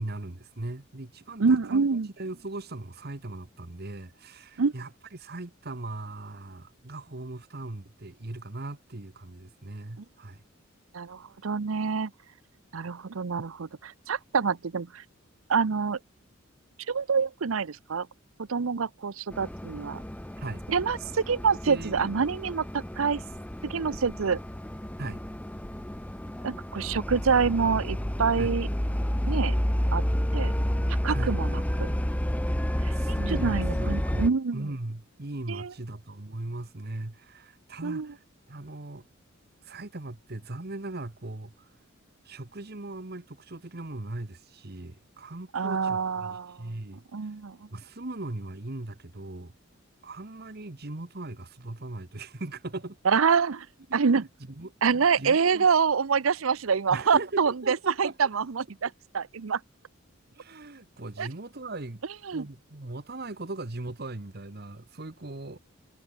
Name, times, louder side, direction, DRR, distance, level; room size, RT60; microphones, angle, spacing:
voice 1, 0.0-1.8 2.2-10.4 20.4-20.6 21.7-22.1 25.0-25.2 28.4-28.5 31.1-31.4 32.9-39.1 39.6-41.7 42.2-47.0 47.7-49.5 50.0-53.0 53.9-55.7 56.9-58.1 60.3-62.0 62.3-65.6, right 2 dB, 50° right, 1.4 m, -39 dB
voice 2, 1.4-2.1 4.6-4.7 10.9-12.1 12.7-15.0 15.5-16.0 16.9-18.1 18.4-20.0 20.7-23.2 23.6-24.4 26.4-28.7 29.3-29.6 29.9-30.0 30.3-30.5 31.0-31.9 32.8-33.2 33.4-34.7 35.5-35.7 37.8-38.1 45.5-46.6 47.1-47.6 53.1-53.7 53.9-54.3 54.8-58.9 59.1-59.6 61.2-61.3 62.3-62.4, right 5 dB, 85° right, 0.7 m, -26 dB
Train starting up the engain and depart, 19.3-34.3, equal, 5° left, 0.9 m, -30 dB
head